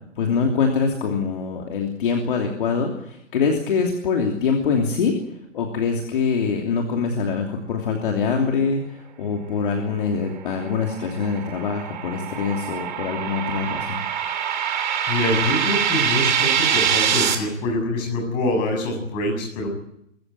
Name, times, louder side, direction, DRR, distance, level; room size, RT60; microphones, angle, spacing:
voice 1, 0.2-5.2 5.5-14.0, left 5 dB, 45° left, 1 dB, 3.0 m, -24 dB
sound 1, 10.5-17.3, right 8 dB, 35° right, 3.3 m, -24 dB
voice 2, 15.0-19.7, left 1 dB, 20° left, 1 dB, 6.9 m, -25 dB
23.5 x 15.0 x 9.3 m, 0.77 s
hypercardioid pair, 170°, 37 cm